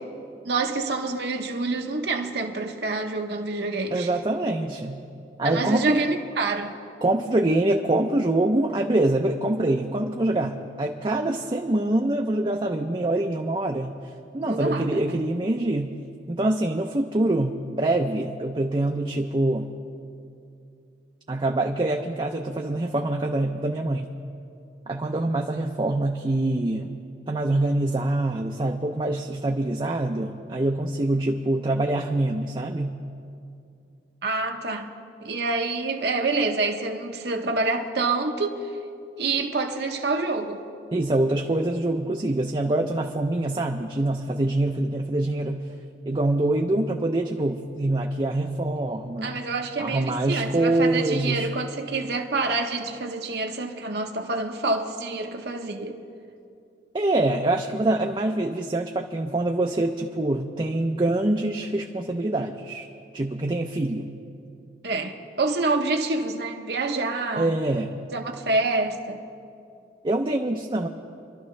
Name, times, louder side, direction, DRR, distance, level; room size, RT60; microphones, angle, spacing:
voice 1, 0.4-4.1 5.4-6.8 14.4-14.9 34.2-34.9 35.2-38.7 39.2-40.7 49.2-56.0 64.8-67.5 68.1-69.2, right 3 dB, 65° right, 0.9 m, -27 dB
voice 2, 3.9-5.1 5.4-6.0 7.0-14.0 14.3-16.0 16.3-19.7 21.3-24.1 24.9-26.9 27.3-33.0 40.9-45.6 46.1-49.3 49.8-51.5 56.9-62.9 63.1-64.1 67.4-67.9 70.0-70.9, right 2 dB, 30° right, 0.5 m, -25 dB
25.0 x 12.0 x 3.2 m
head